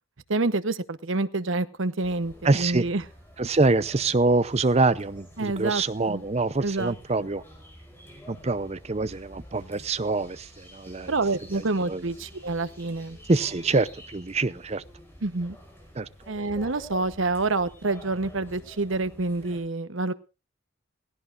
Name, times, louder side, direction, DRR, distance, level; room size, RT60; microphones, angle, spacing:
voice 1, 0.3-3.0 5.4-6.2 6.6-6.9 11.1-13.2 15.2-15.6 16.3-20.1, right 3 dB, 75° right, 0.9 m, -27 dB
sound 1, 2.0-19.6, equal, 10° left, 5.1 m, -48 dB
voice 2, 2.4-2.9 3.4-7.4 8.3-11.1 11.5-12.0 13.3-14.8 16.0-16.1, right 3 dB, 30° right, 0.6 m, -25 dB
18.0 x 16.5 x 2.5 m
head